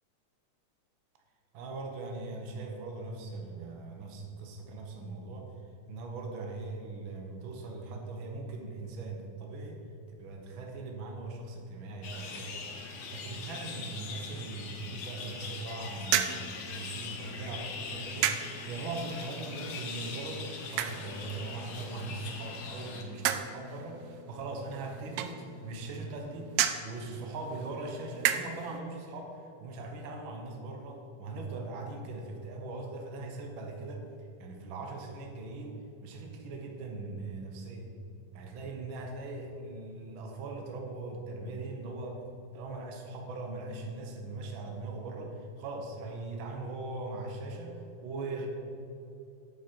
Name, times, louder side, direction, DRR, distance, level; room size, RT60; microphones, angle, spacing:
voice 1, 1.5-5.5 5.9-9.8 10.2-12.8 13.1-26.5 26.8-34.1 34.4-37.9 38.3-42.2 42.5-48.5, right 3 dB, 65° right, 2 dB, 1.2 m, -40 dB
sound 1, 12.0-23.0, left 5 dB, 65° left, 1.6 m, -42 dB
sound 2, 16.0-28.8, right 11 dB, 85° right, 1.6 m, -36 dB
8.8 x 8.4 x 4.6 m, 2.8 s
omnidirectional pair, 3.7 m